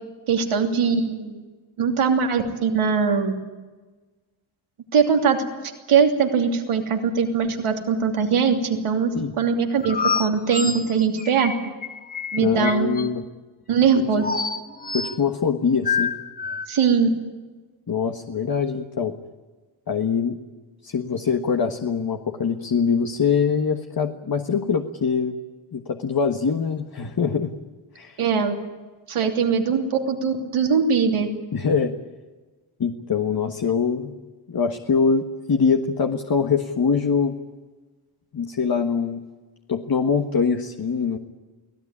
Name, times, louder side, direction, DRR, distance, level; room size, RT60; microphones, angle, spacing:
voice 1, 0.3-1.4 1.8-3.4 4.9-5.5 5.9-9.1 9.4-11.5 12.3-12.9 13.7-14.3 16.7-17.1 28.2-28.5 29.1-31.3, right 6 dB, 90° right, 3 dB, 3.1 m, -21 dB
sound 1, 9.8-13.1 14.2-15.2 15.8-16.7, left 5 dB, 20° left, 1.1 m, -27 dB
voice 2, 12.4-13.2 14.0-14.3 14.9-16.1 17.9-19.1 19.9-20.4 20.8-25.4 25.7-27.5 27.9-28.2 31.5-31.9 32.8-34.1 34.5-37.3 38.3-39.2 39.7-41.2, left 6 dB, 45° left, 5 dB, 1.5 m, -23 dB
24.0 x 17.0 x 9.8 m, 1.3 s
cardioid pair, 90°, 49 cm